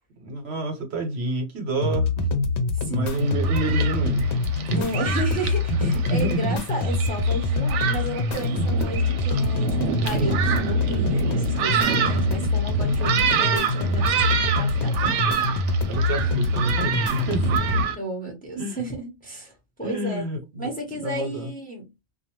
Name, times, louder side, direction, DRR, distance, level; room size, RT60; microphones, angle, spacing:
voice 1, 0.2-2.3 2.8-4.2 4.7-4.8 5.8-6.6 14.9-15.3 15.8-17.6 18.6-18.8 19.8-20.7 21.0-21.5, right 1 dB, 65° right, 1.1 m, -28 dB
sound 1, 1.8-17.8, left 2 dB, 75° left, 0.8 m, -25 dB
voice 2, 2.7-3.3 4.7-15.1 17.6-20.3 20.6-21.9, right 1 dB, 10° left, 0.8 m, -33 dB
Thunderstorm, 3.1-18.0, right 7 dB, 85° right, 0.9 m, -27 dB
2.5 x 2.2 x 3.0 m
omnidirectional pair, 1.2 m